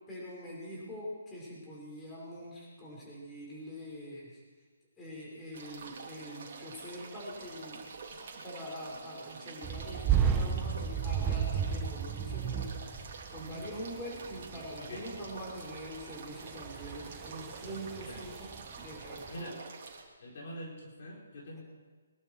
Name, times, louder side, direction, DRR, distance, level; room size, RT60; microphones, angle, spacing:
voice 1, 0.1-4.4 5.0-7.8 8.1-12.7 13.3-18.5 18.8-19.5, equal, 15° left, -5 dB, 5.4 m, -44 dB
sound 1, 5.5-20.0, right 4 dB, 50° right, 3.1 m, -48 dB
sound 2, 9.6-19.4, right 8 dB, 15° right, 1.3 m, -34 dB
voice 2, 13.4-13.7 14.8-15.1 18.0-18.2 19.3-19.6 20.2-21.6, equal, 50° left, -2 dB, 4.4 m, -45 dB
24.0 x 12.0 x 4.7 m, 1.4 s
figure-of-eight pair, 145°, 0 cm